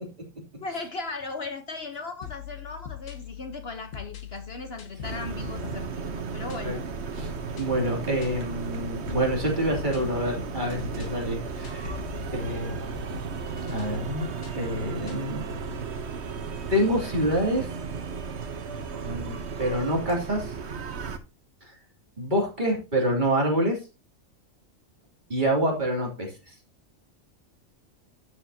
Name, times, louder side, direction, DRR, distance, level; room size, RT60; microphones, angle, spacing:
voice 1, 0.6-6.8, left 3 dB, 50° left, 1.2 m, -37 dB
sound 1, 2.2-15.9, left 8 dB, 70° left, 1.4 m, -42 dB
sound 2, 5.0-21.2, right 5 dB, 55° right, 1.2 m, -35 dB
voice 2, 7.1-12.0 12.3-12.8 13.7-14.3 14.5-15.4 16.7-17.7 19.0-20.5 22.2-23.8 25.3-26.3, right 1 dB, 35° right, 3.1 m, -27 dB
12.0 x 7.6 x 2.8 m
omnidirectional pair, 1.4 m